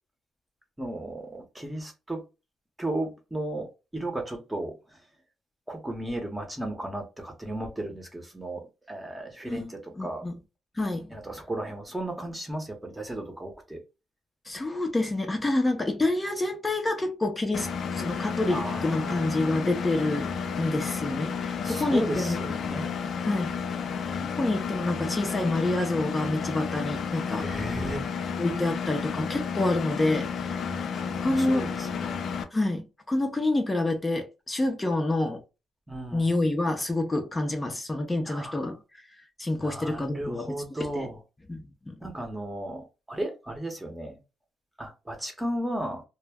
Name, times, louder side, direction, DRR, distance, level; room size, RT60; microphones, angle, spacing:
voice 1, 0.8-2.2 2.8-5.0 5.7-10.2 11.1-13.8 18.5-19.7 21.6-23.0 27.4-28.0 31.1-32.3 35.9-36.3 38.3-38.7 39.5-41.2 42.0-44.2 44.8-46.0, right 1 dB, 10° right, 0.8 m, -35 dB
voice 2, 10.0-10.4 10.8-11.3 14.5-20.3 20.6-22.4 23.3-23.6 24.2-27.5 28.4-30.6 31.1-31.6 32.5-35.4 36.1-38.8 39.4-40.6 40.9-41.1 41.5-42.0, left 2 dB, 20° left, 0.6 m, -28 dB
Engine, 17.5-32.4, left 6 dB, 60° left, 0.4 m, -32 dB
2.1 x 2.1 x 3.4 m
cardioid pair, 90°, 0 cm